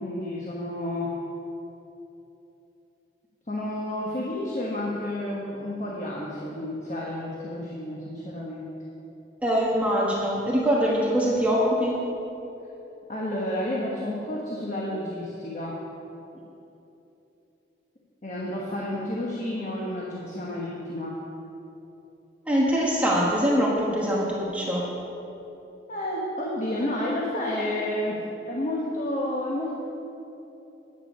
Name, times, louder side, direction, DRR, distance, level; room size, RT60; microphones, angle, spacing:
voice 1, 0.0-1.1 3.5-8.7 13.1-15.7 18.2-21.2 25.9-28.2 28.4-29.8, left 1 dB, 40° left, -4 dB, 1.2 m, -30 dB
voice 2, 9.4-12.0 22.5-24.9, equal, 10° right, -5 dB, 1.3 m, -23 dB
9.6 x 9.2 x 5.6 m, 3.0 s
head